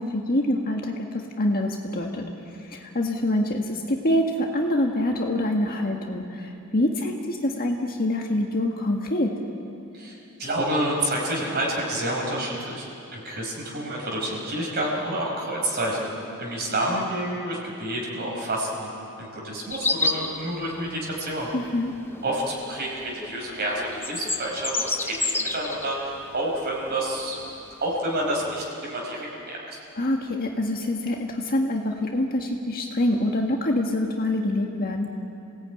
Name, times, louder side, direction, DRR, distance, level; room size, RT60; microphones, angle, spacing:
voice 1, 0.0-2.3 2.7-9.3 21.5-21.9 30.0-35.2, left 1 dB, 45° left, 1 dB, 1.7 m, -25 dB
voice 2, 9.9-16.1 16.4-18.9 19.2-21.5 22.2-27.4 27.8-29.8, right 1 dB, 45° right, -2 dB, 4.8 m, -29 dB
sound 1, 19.7-22.4 22.7-28.6, left 3 dB, 10° left, 0.9 m, -30 dB
28.0 x 18.0 x 9.2 m, 2.9 s
head